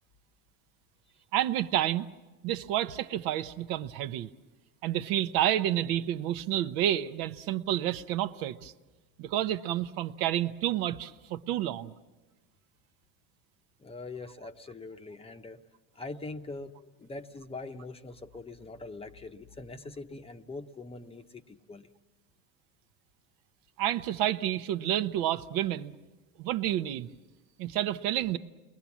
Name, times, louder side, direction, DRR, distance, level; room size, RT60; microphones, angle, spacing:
voice 1, 1.3-2.1 2.4-4.3 4.8-8.7 9.2-11.9 23.8-25.9 26.4-27.1 27.6-28.4, right 12 dB, 65° right, 0.9 m, -29 dB
voice 2, 13.8-15.6 16.0-21.9, left 3 dB, 15° left, 0.8 m, -43 dB
29.0 x 21.5 x 7.2 m
supercardioid pair, 130°, 37 cm